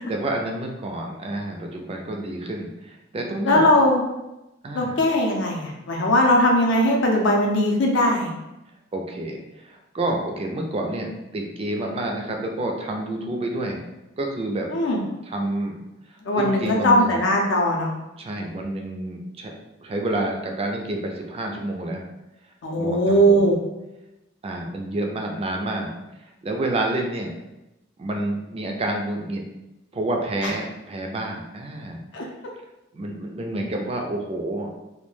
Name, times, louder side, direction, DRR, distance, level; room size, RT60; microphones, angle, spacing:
voice 1, 0.1-3.7 4.6-5.0 8.9-13.8 14.2-14.7 15.2-15.8 16.3-17.3 18.2-19.5 19.8-22.0 22.8-23.5 24.4-25.9 26.4-27.3 28.0-29.4 29.9-32.0 32.9-34.7, right 1 dB, 30° right, 2 dB, 0.4 m, -28 dB
voice 2, 3.4-4.0 4.7-8.3 14.7-15.0 16.2-17.9 22.6-23.6 30.4-30.5 32.1-32.3, left 1 dB, 70° left, 0 dB, 0.5 m, -19 dB
2.3 x 2.1 x 3.1 m, 0.96 s
head